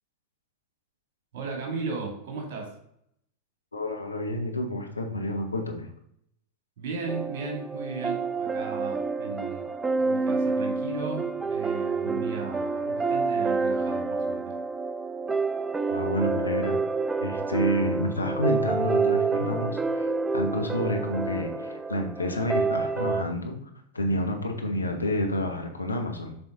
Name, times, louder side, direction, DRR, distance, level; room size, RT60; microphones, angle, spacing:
voice 1, 1.3-2.7 6.8-9.7 10.0-14.6, right 4 dB, 50° right, 1 dB, 2.3 m, -36 dB
voice 2, 3.7-5.9 12.0-12.1 12.9-13.0 15.9-16.8 17.2-23.6 23.9-26.4, left 1 dB, 80° left, 4 dB, 1.0 m, -29 dB
sound 1, 7.1-23.2, right 4 dB, 15° right, 0.4 m, -28 dB
6.9 x 4.2 x 3.9 m, 0.72 s
figure-of-eight pair, 90°, 0 cm